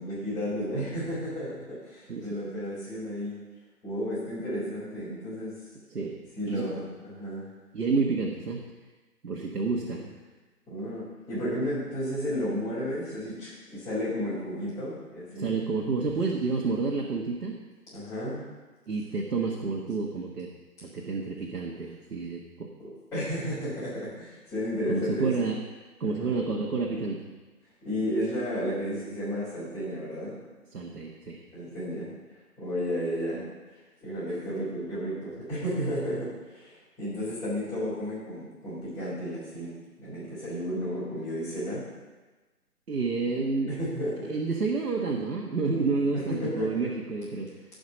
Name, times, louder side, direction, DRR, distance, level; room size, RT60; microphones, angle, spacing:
voice 1, 0.0-3.3 3.8-5.6 6.4-7.5 9.9-10.0 10.7-15.5 17.9-18.5 22.8-25.3 26.0-26.4 27.8-30.4 31.5-33.4 34.0-39.7 40.0-41.8 43.2-43.4 43.7-44.3 45.7-46.9, equal, 5° left, -13 dB, 3.7 m, -33 dB
voice 2, 7.7-8.6 9.2-10.1 15.3-17.6 18.9-20.5 20.8-22.7 24.9-25.6 26.0-27.3 30.7-31.4 42.9-43.7 44.2-47.5, right 4 dB, 70° right, -1 dB, 1.6 m, -29 dB
15.0 x 5.3 x 5.3 m, 1.2 s
figure-of-eight pair, 155°, 47 cm